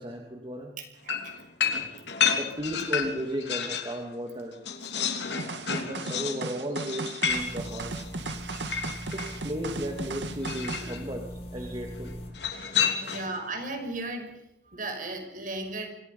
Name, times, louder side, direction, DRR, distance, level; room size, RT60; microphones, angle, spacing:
voice 1, 0.0-0.7 2.3-4.5 5.7-8.0 9.1-12.2 13.0-13.2, equal, 30° right, 2 dB, 2.7 m, -35 dB
voice 2, 0.8-1.3 2.7-2.9 10.8-10.9 11.6-11.8 12.5-15.9, right 2 dB, 50° right, 5 dB, 5.7 m, -37 dB
sound 1, 1.1-4.0 4.3-9.4 10.4-11.0 12.3-13.4, left 7 dB, 70° left, 3.3 m, -30 dB
sound 2, 5.4-10.9, right 3 dB, 80° right, 2.4 m, -37 dB
sound 3, 7.3-12.3, equal, 35° left, 5.4 m, -41 dB
28.5 x 26.0 x 5.7 m, 0.84 s
head